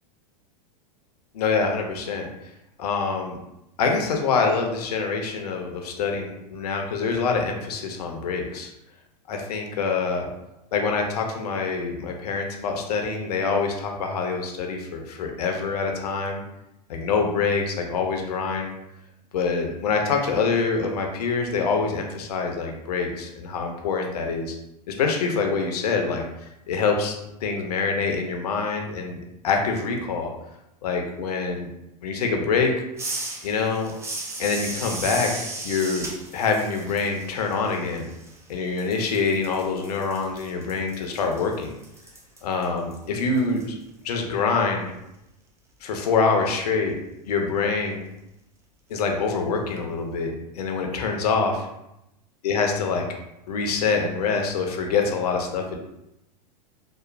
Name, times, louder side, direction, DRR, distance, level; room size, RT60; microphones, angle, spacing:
voice 1, 1.3-2.3 2.8-3.4 3.8-8.7 9.3-10.3 10.7-16.4 16.9-18.7 19.3-24.5 24.9-26.2 26.7-27.1 27.4-29.2 29.4-30.3 30.8-31.7 32.0-32.7 33.4-33.9 34.4-36.1 36.3-38.1 38.5-41.7 42.4-43.7 44.0-44.9 45.8-47.0 47.3-48.0 48.9-51.7 52.4-53.1 53.5-55.8, left 4 dB, 70° left, 2 dB, 0.6 m, -25 dB
sound 1, 33.0-38.5 38.8-43.6, right 2 dB, 15° right, 0.4 m, -36 dB
2.9 x 2.0 x 2.5 m, 0.86 s
hypercardioid pair, 95°, 21 cm